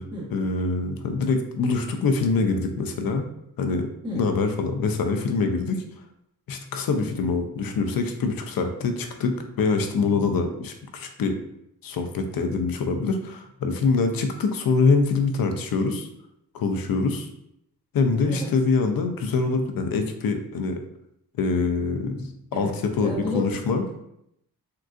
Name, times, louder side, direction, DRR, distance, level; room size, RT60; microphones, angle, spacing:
voice 1, 0.3-3.3 3.6-3.9 4.1-5.8 6.5-11.4 11.8-16.1 16.5-17.3 17.9-20.8 21.4-23.8, left 4 dB, 65° left, 5 dB, 0.5 m, -24 dB
voice 2, 23.0-23.5, equal, 10° right, -7 dB, 1.0 m, -31 dB
3.7 x 2.3 x 2.4 m, 0.78 s
wide cardioid pair, 95°, 38 cm